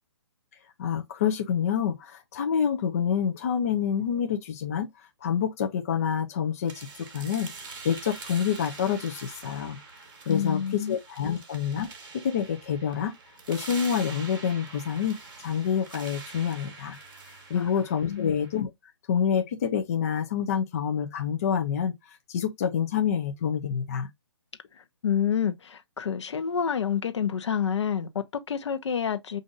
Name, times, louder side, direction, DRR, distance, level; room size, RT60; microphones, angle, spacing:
voice 1, 0.8-4.9 5.2-9.8 10.3-13.2 13.5-17.0 17.5-18.7 19.1-21.9 22.3-24.1, left 8 dB, 30° left, 0.4 m, -27 dB
sound 1, 6.7-18.6, right 4 dB, 45° right, 1.3 m, -44 dB
voice 2, 10.3-11.0 11.3-11.4 17.5-17.7 18.1-18.4 24.7-29.4, left 8 dB, 70° left, 0.7 m, -28 dB
5.1 x 2.5 x 2.5 m
hypercardioid pair, 165°, 15 cm